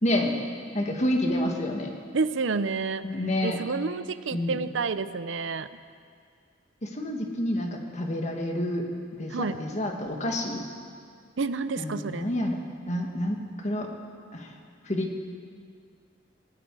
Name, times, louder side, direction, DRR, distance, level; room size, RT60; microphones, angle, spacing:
voice 1, 0.0-0.3 0.7-1.9 3.0-3.6 4.3-4.6 6.8-8.8 9.2-10.6 11.8-12.6 12.9-13.4 13.6-13.9 14.3-14.5 14.8-15.1, left 1 dB, 35° left, 2 dB, 1.8 m, -28 dB
voice 2, 2.1-3.1 3.4-5.7 9.3-9.6 11.4-12.3, right 4 dB, 75° right, 14 dB, 0.6 m, -29 dB
17.5 x 17.0 x 4.8 m, 2.1 s
head